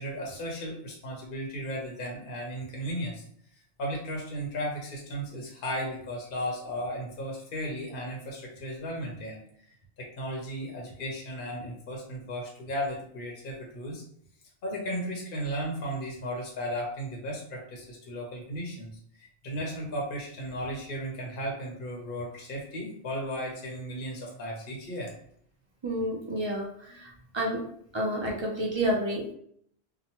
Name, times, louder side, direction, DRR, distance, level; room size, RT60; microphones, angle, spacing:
voice 1, 0.0-3.2 3.8-9.4 9.7-14.0 14.6-25.1, equal, 55° left, -1 dB, 0.7 m, -35 dB
voice 2, 25.8-26.7 27.0-27.1 27.3-27.6 27.9-29.3, right 1 dB, 35° right, -3 dB, 0.4 m, -29 dB
2.9 x 2.2 x 2.8 m, 0.65 s
omnidirectional pair, 1.1 m